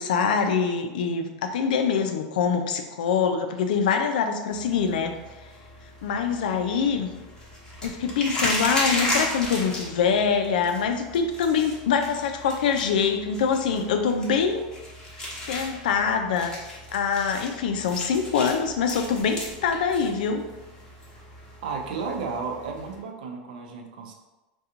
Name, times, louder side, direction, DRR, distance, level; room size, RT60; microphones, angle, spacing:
voice 1, 0.0-5.1 6.0-7.1 7.8-14.6 15.5-16.5 16.9-20.4, left 6 dB, 90° left, 6 dB, 0.4 m, -24 dB
sound 1, 4.5-23.0, left 1 dB, 15° left, 1.1 m, -35 dB
voice 2, 21.6-24.1, right 5 dB, 85° right, 2 dB, 0.6 m, -33 dB
2.8 x 2.3 x 3.7 m, 1.1 s
supercardioid pair, 120°, 4 cm